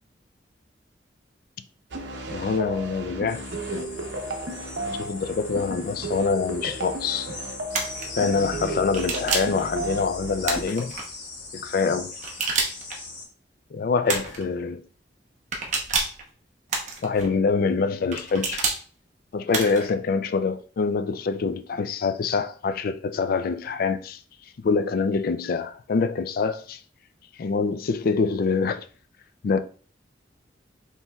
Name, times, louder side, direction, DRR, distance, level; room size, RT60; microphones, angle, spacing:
sound 1, 1.9-10.7, right 2 dB, 85° right, 0.8 m, -34 dB
voice 1, 2.3-3.4 3.7-4.0 4.9-7.3 8.2-10.9 11.5-12.1 13.7-14.8 17.0-18.7 19.3-24.2 24.6-26.8 27.4-28.8 29.4-29.6, left 4 dB, 55° left, 0.3 m, -25 dB
sound 2, 3.3-13.3, left 3 dB, 85° left, 1.7 m, -40 dB
sound 3, 7.7-8.1 8.9-9.6 10.4-11.1 12.2-13.0 14.1-14.4 15.5-16.2 16.7-17.3 18.1-18.8 19.5-19.9, right 4 dB, 40° right, 0.9 m, -28 dB
5.5 x 3.1 x 2.3 m
head